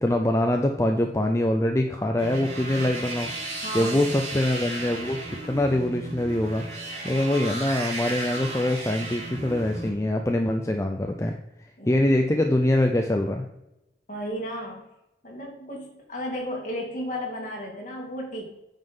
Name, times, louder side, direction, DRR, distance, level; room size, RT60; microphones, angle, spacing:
voice 1, 0.0-3.3 3.7-6.6 7.0-11.4 11.9-13.5, left 1 dB, 15° left, 3 dB, 0.5 m, -24 dB
sound 1, 2.2-9.9, right 2 dB, 35° right, 3.3 m, -35 dB
voice 2, 3.6-4.0 11.8-12.0 14.1-14.9 15.2-18.5, equal, 45° left, 0 dB, 2.5 m, -34 dB
9.3 x 5.5 x 5.5 m, 0.88 s
head